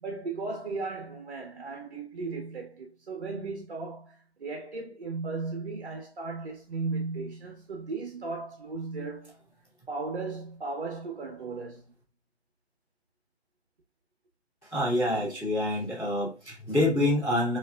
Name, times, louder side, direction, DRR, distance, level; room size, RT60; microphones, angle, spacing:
voice 1, 0.0-9.3 9.9-11.9, right 3 dB, 55° right, 1.0 m, -36 dB
voice 2, 14.7-17.6, left 1 dB, 10° left, 1.1 m, -26 dB
5.8 x 2.7 x 2.3 m
hypercardioid pair, 175°, 33 cm